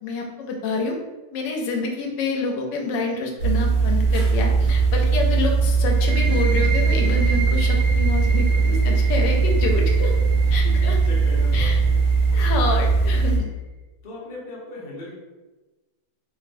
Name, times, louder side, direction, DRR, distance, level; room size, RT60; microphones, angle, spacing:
voice 1, 0.0-1.0 1.3-10.1 10.5-10.9 11.5-11.8 12.3-13.5, left 3 dB, 85° left, 1 dB, 1.2 m, -27 dB
sound 1, 3.4-13.4, right 4 dB, 55° right, 0.9 m, -19 dB
sound 2, 5.9-13.3, right 3 dB, 25° right, 0.4 m, -34 dB
voice 2, 8.2-9.0 10.4-11.9 14.0-15.1, left 1 dB, 40° left, -5 dB, 0.7 m, -38 dB
3.1 x 3.0 x 2.6 m, 1.2 s
omnidirectional pair, 1.9 m